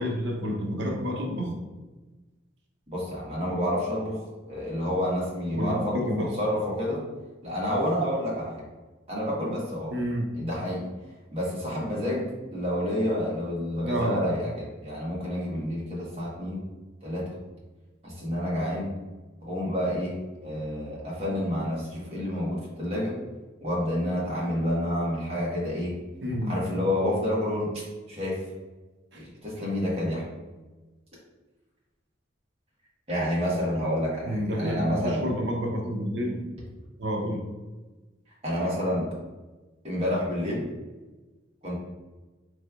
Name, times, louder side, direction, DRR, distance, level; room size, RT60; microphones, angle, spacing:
voice 1, 0.0-1.6 5.5-6.3 9.9-10.3 13.8-14.2 26.2-26.5 29.1-29.2 34.3-36.4 37.0-37.4, equal, 65° right, 1 dB, 0.7 m, -29 dB
voice 2, 2.9-7.0 7.4-8.6 9.1-9.9 10.3-10.9 11.3-16.6 17.0-17.3 18.0-18.9 19.4-23.1 23.6-25.9 26.4-27.7 28.1-28.4 29.1-30.2 33.1-35.2 38.4-39.1 39.8-40.7 41.6-41.8, equal, 30° right, -5 dB, 1.2 m, -29 dB
4.4 x 3.2 x 2.4 m, 1.2 s
head